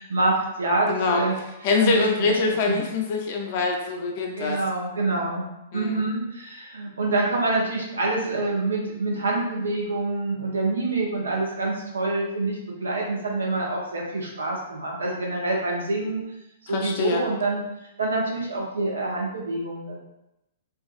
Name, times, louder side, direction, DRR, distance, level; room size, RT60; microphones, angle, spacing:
voice 1, 0.0-1.3 1.8-2.4 2.7-2.8 4.3-16.2 16.7-17.6 18.0-20.0, right 2 dB, 80° right, -2 dB, 0.7 m, -26 dB
voice 2, 0.9-1.2 1.6-4.6 5.7-5.9 16.7-17.2, left 4 dB, 50° left, 1 dB, 0.6 m, -24 dB
2.5 x 2.4 x 2.4 m, 0.89 s
hypercardioid pair, 115°, 0 cm